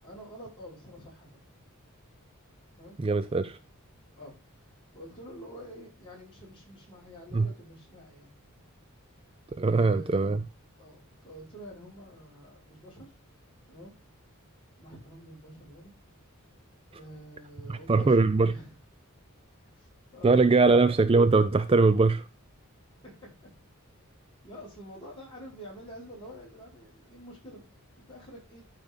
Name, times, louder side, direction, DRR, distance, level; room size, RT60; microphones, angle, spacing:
voice 1, 0.0-1.4 2.8-3.0 4.1-4.4 4.9-8.3 9.6-10.4 10.8-13.1 13.7-14.0 14.8-15.9 16.9-18.8 19.7-20.8 23.0-23.3 24.4-27.6 28.1-28.6, equal, 25° left, 5.7 m, -47 dB
voice 2, 3.0-3.6 7.3-7.5 9.6-10.4 17.7-18.5 20.2-22.3, right 3 dB, 25° right, 0.4 m, -21 dB
12.0 x 5.3 x 3.9 m
head